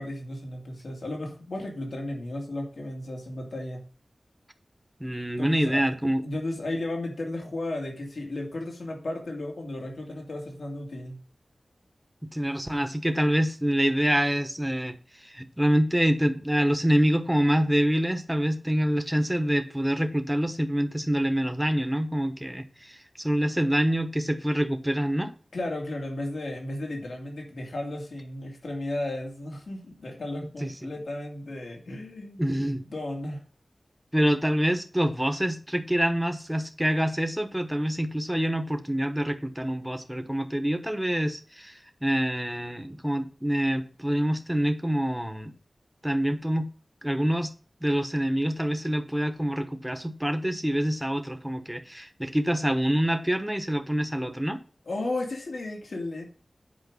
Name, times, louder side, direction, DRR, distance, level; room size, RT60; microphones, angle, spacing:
voice 1, 0.0-3.9 5.4-5.8 6.2-11.2 25.5-33.4 54.9-56.3, left 1 dB, 90° left, 1 dB, 2.4 m, -34 dB
voice 2, 5.0-6.2 12.2-15.0 15.2-25.3 30.6-30.9 32.4-32.8 34.1-45.5 46.0-46.7 47.0-47.5 47.8-54.6, equal, 5° right, 8 dB, 1.1 m, -26 dB
8.6 x 5.1 x 6.7 m, 0.38 s
wide cardioid pair, 85°, 0 cm